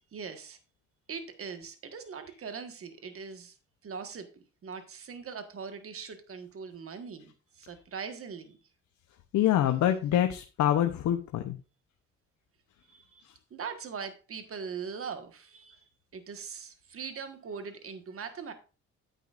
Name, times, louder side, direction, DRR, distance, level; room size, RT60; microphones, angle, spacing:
voice 1, 0.1-0.6 1.1-3.5 3.8-4.3 4.6-8.6 12.9-13.2 13.5-15.8 16.1-18.5, right 6 dB, 45° right, 1.5 m, -41 dB
voice 2, 9.3-11.6, left 11 dB, 75° left, 0.8 m, -25 dB
9.1 x 9.1 x 2.5 m
cardioid pair, 90°, 30 cm